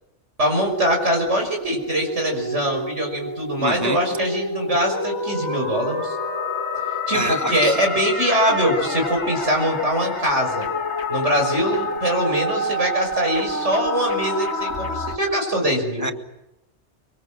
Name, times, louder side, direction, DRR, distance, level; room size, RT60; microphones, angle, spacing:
voice 1, 0.4-6.1 7.1-10.7 11.1-16.1, equal, 75° right, 6.3 m, -22 dB
sound 1, 0.6-15.2, left 2 dB, 70° left, 2.1 m, -28 dB
voice 2, 3.6-4.0 7.1-7.8 16.0-16.1, right 1 dB, 15° left, 0.8 m, -25 dB
25.0 x 24.5 x 7.6 m
omnidirectional pair, 1.2 m